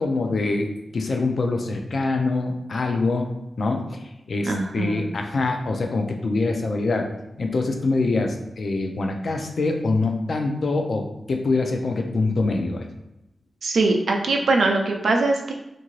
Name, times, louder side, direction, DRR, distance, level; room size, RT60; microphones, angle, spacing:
voice 1, 0.0-3.3 3.6-7.1 7.4-12.9, left 3 dB, 60° left, 3 dB, 0.4 m, -24 dB
voice 2, 4.4-5.0 13.6-15.5, right 3 dB, 80° right, 2 dB, 0.4 m, -22 dB
2.8 x 2.6 x 3.0 m, 0.90 s
wide cardioid pair, 135°, 0 cm